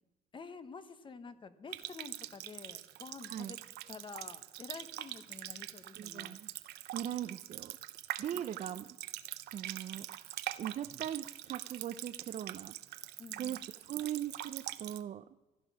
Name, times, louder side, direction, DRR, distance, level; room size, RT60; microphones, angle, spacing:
voice 1, 0.3-3.6 3.9-6.4 8.3-8.5 13.2-13.6, left 4 dB, 30° left, 12 dB, 1.0 m, -49 dB
Water tap faucet, 1.7-15.0, right 14 dB, 80° right, 0.7 m, -44 dB
voice 2, 6.0-6.5 6.9-7.8 8.2-8.9 9.5-10.1 10.6-13.1 13.4-15.3, right 10 dB, 45° right, 10 dB, 0.5 m, -40 dB
15.5 x 10.5 x 6.1 m, 1.1 s
cardioid pair, 110°, 17 cm